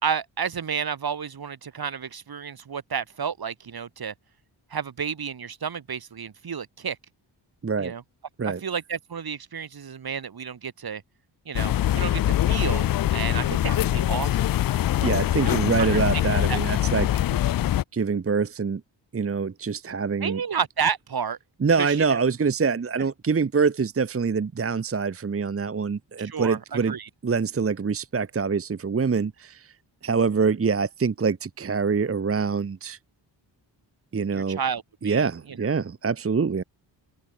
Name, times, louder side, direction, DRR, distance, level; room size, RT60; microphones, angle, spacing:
voice 1, 0.0-4.1 4.7-7.0 7.8-8.0 8.4-11.0 11.5-14.5 15.4-16.6 20.2-21.4 21.8-22.2 26.2-27.1 34.3-35.6, right 7 dB, 50° right, 1.9 m, -31 dB
sound 1, 11.5-17.8, left 13 dB, 50° left, 0.4 m, -23 dB
voice 2, 15.0-17.1 17.9-18.8 19.1-20.4 21.6-26.9 27.2-29.7 30.0-33.0 34.1-34.6 35.0-36.6, right 5 dB, 30° right, 1.0 m, -25 dB
open air
cardioid pair, 65°, 46 cm